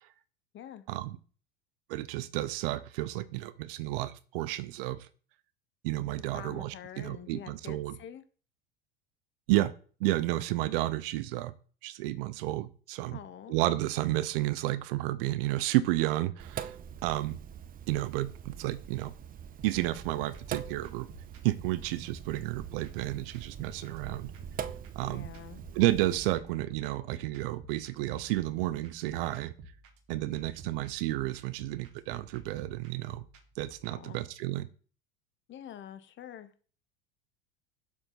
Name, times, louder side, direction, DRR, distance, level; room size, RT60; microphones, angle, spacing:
voice 1, 1.9-5.1 5.8-8.0 9.5-9.7 10.0-11.5 11.8-13.2 13.5-16.7 17.0-17.4 17.9-19.1 19.6-21.1 21.4-24.3 25.0-25.3 25.7-29.5 30.1-33.2 33.6-34.7, right 16 dB, 65° right, 15 dB, 0.8 m, -31 dB
voice 2, 6.3-8.2 13.1-13.6 25.0-25.6 33.9-34.2 35.5-36.5, left 10 dB, 40° left, 12 dB, 1.2 m, -46 dB
Sink (filling or washing), 16.4-26.3, right 8 dB, 30° right, 0.7 m, -43 dB
sound 1, 19.6-33.9, right 3 dB, 50° right, 2.0 m, -52 dB
7.3 x 7.3 x 4.2 m, 0.40 s
hypercardioid pair, 85°, 30 cm